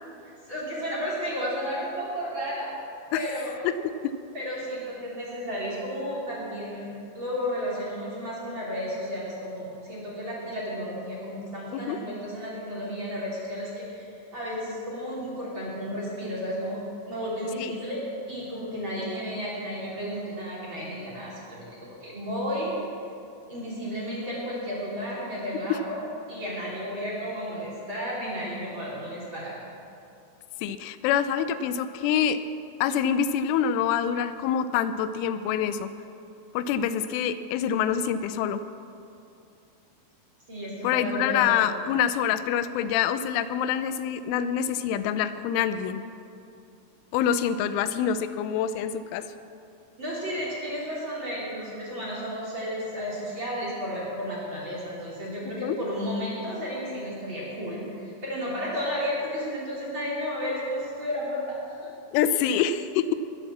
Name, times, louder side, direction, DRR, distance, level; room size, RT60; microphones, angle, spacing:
voice 1, 0.4-2.7 3.1-3.5 4.3-6.9 7.1-14.0 14.3-16.8 17.1-22.7 23.5-26.0 26.3-29.7 40.5-41.6 50.0-61.9, equal, 30° right, -7 dB, 3.3 m, -33 dB
voice 2, 3.6-4.1 11.7-12.0 17.6-17.7 30.6-32.4 32.8-35.9 36.5-38.6 40.8-46.0 47.1-49.3 55.6-55.8 62.1-63.2, left 8 dB, 85° left, 12 dB, 3.1 m, -26 dB
20.5 x 7.8 x 7.3 m, 2.6 s
omnidirectional pair, 5.5 m